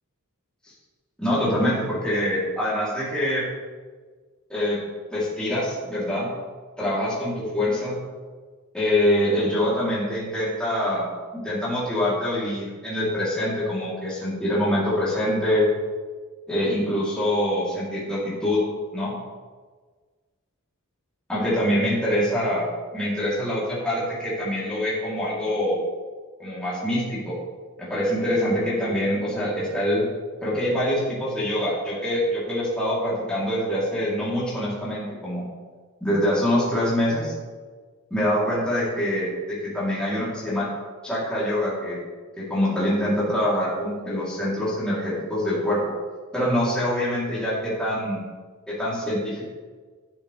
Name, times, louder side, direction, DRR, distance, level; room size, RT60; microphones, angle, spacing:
voice 1, 1.2-3.4 4.5-4.8 5.1-6.3 6.8-8.0 8.7-11.1 11.3-15.7 16.5-18.7 18.9-19.1 21.3-22.7 22.9-25.8 26.4-27.3 27.8-30.1 30.4-35.4 36.0-37.3 38.1-40.7 41.0-42.0 42.4-45.8 46.3-48.2 48.7-49.5, left 1 dB, 5° left, -9 dB, 3.2 m, -24 dB
10.5 x 9.1 x 3.3 m, 1.5 s
head